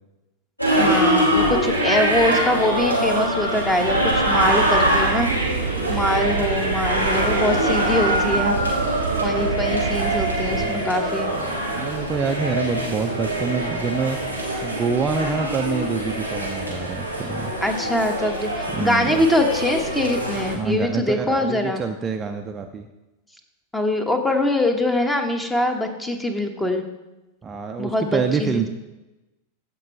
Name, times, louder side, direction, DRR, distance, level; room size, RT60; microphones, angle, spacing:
sound 1, 0.6-20.5, right 1 dB, 90° left, 2.4 m, -23 dB
voice 1, 0.8-5.3 5.9-8.7 9.2-11.3 17.6-21.8 23.7-26.8 27.8-28.7, left 1 dB, 10° left, 6 dB, 1.2 m, -23 dB
sound 2, 3.8-10.7, right 9 dB, 60° right, 0.5 m, -29 dB
voice 2, 10.5-10.9 11.2-14.2 14.6-17.5 18.7-19.2 20.5-22.9 27.4-28.7, right 5 dB, 20° right, 5 dB, 0.6 m, -26 dB
15.5 x 5.3 x 4.5 m, 1.0 s
figure-of-eight pair, 90°, 0 cm